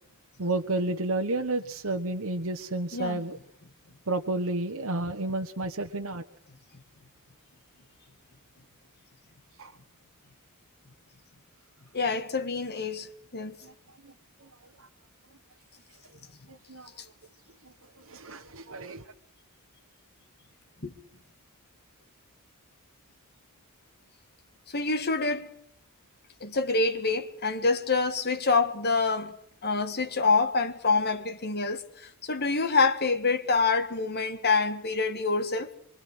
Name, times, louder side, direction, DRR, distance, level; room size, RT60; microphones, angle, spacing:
voice 1, 0.4-3.4 4.1-6.2 9.6-9.7 13.6-13.7 14.0-14.1 14.4-14.5 14.8-14.9 16.5-16.9 17.6-19.1, right 2 dB, 70° right, 1.3 m, -31 dB
voice 2, 11.9-13.6 20.8-20.9 24.7-25.5 26.4-29.4 29.6-35.7, left 4 dB, 50° left, 2.0 m, -26 dB
25.0 x 24.0 x 6.3 m
head